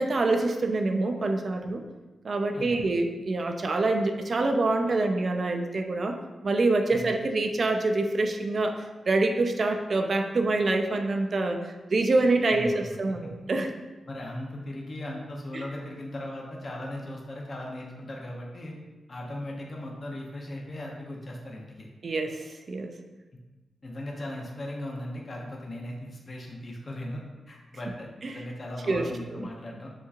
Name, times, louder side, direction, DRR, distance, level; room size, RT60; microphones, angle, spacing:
voice 1, 0.0-1.8 2.2-6.2 6.4-13.7 15.5-15.6 22.0-23.0 28.2-28.3 28.9-29.5, right 2 dB, 45° right, 4 dB, 0.4 m, -26 dB
voice 2, 2.5-2.9 6.9-7.1 12.5-13.0 13.2-13.3 14.1-18.8 19.1-21.9 23.8-29.9, left 1 dB, 40° left, -1 dB, 0.7 m, -38 dB
6.9 x 2.9 x 2.4 m, 1.2 s
wide cardioid pair, 115°, 0 cm